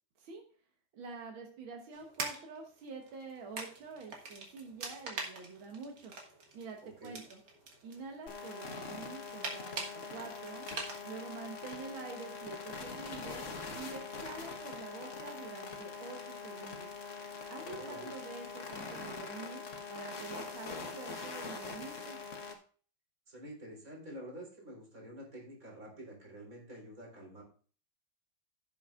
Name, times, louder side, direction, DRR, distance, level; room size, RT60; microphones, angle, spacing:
voice 1, 0.9-6.1 6.5-7.4 7.8-10.7 11.0-16.9 17.5-19.6 19.9-22.2, right 4 dB, 90° right, 2 dB, 2.0 m, -47 dB
sound 1, 1.9-11.0, right 3 dB, 60° right, 2.1 m, -45 dB
voice 2, 6.8-7.3 17.6-18.1 23.3-27.4, right 1 dB, 45° right, -2 dB, 4.2 m, -48 dB
sound 2, 8.3-22.5, left 4 dB, 40° left, 1.5 m, -43 dB
16.0 x 7.0 x 2.5 m, 0.43 s
omnidirectional pair, 2.1 m